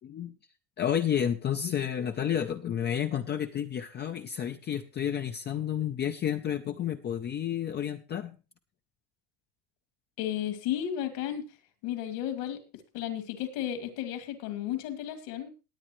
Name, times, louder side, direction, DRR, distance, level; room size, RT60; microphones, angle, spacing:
voice 1, 0.0-0.4 0.8-8.4, left 9 dB, 25° left, 7 dB, 0.6 m, -31 dB
voice 2, 10.2-11.5 11.8-12.6 12.9-15.5, left 11 dB, 70° left, 8 dB, 2.7 m, -33 dB
19.5 x 8.5 x 3.1 m, 0.31 s
cardioid pair, 140°, 41 cm